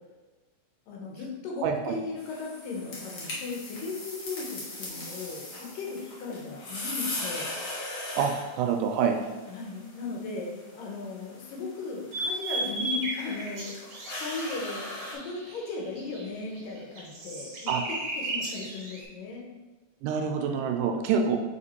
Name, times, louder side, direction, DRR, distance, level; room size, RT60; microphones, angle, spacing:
voice 1, 0.9-7.5 9.5-19.5, left 4 dB, 80° left, -1 dB, 2.6 m, -37 dB
voice 2, 1.6-2.0 8.2-9.2 17.7-17.8 20.0-21.4, right 6 dB, 80° right, 4 dB, 2.0 m, -26 dB
sound 1, 2.2-15.1, left 2 dB, 50° left, 1.6 m, -40 dB
sound 2, 12.1-16.2 16.6-19.0, right 2 dB, 60° right, 1.1 m, -34 dB
5.0 x 5.0 x 4.3 m, 1.2 s
omnidirectional pair, 3.9 m